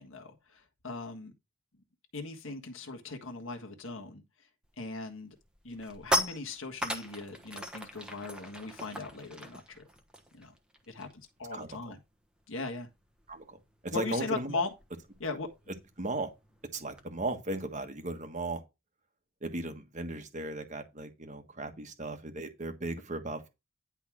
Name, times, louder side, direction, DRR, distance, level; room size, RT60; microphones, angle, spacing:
voice 1, 0.0-1.3 2.1-4.2 4.8-5.3 5.6-9.8 10.3-10.5 10.9-12.0 12.5-12.9 13.9-14.7 15.2-15.5, left 3 dB, 65° left, 1.6 m, -39 dB
sound 1, 4.7-5.0 5.4-11.3 11.6-11.8 12.1-17.1, equal, 5° right, 1.1 m, -38 dB
voice 2, 13.3-14.6 16.0-16.3 16.7-18.6 19.4-23.5, right 2 dB, 35° right, 1.4 m, -36 dB
10.5 x 3.6 x 6.1 m
head